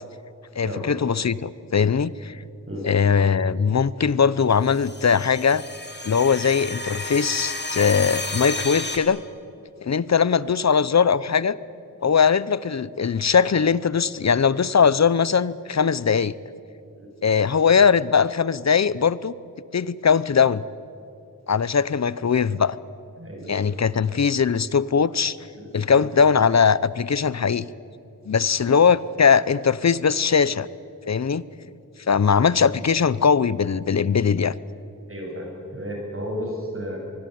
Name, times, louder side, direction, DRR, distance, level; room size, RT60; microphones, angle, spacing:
voice 1, 0.5-2.4 2.8-5.6 6.0-9.2 9.8-11.6 12.0-16.3 17.2-19.3 19.7-20.6 21.5-22.8 23.5-25.4 25.7-27.7 28.3-30.7 31.1-31.4 32.1-34.6, left 6 dB, 55° left, 19 dB, 0.8 m, -20 dB
sound 1, 4.6-9.0, left 2 dB, 30° left, 3.1 m, -32 dB
voice 2, 23.2-23.7 25.5-26.0 35.1-37.0, equal, 40° right, 1 dB, 7.4 m, -33 dB
24.5 x 21.0 x 9.4 m, 2.6 s
wide cardioid pair, 80°, 33 cm